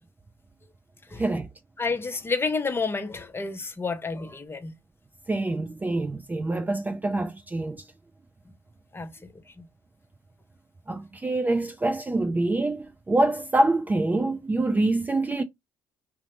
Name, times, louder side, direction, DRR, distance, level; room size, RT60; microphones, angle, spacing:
voice 1, 1.2-1.5 5.3-7.9 10.9-15.4, right 2 dB, 15° right, 0.4 m, -25 dB
voice 2, 1.8-4.7 8.9-9.1 9.6-9.7, left 4 dB, 25° left, 0.7 m, -29 dB
2.8 x 2.1 x 3.1 m
hypercardioid pair, 55°, 10 cm